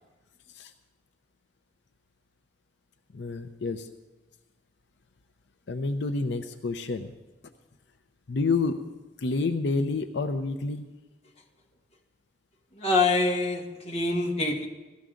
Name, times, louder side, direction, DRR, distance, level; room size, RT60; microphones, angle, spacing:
voice 1, 3.1-3.9 5.7-7.1 8.3-10.9, left 3 dB, 80° left, 8 dB, 0.6 m, -29 dB
voice 2, 12.8-14.7, left 3 dB, 35° left, 1 dB, 1.5 m, -25 dB
18.5 x 13.5 x 3.8 m, 1.2 s
head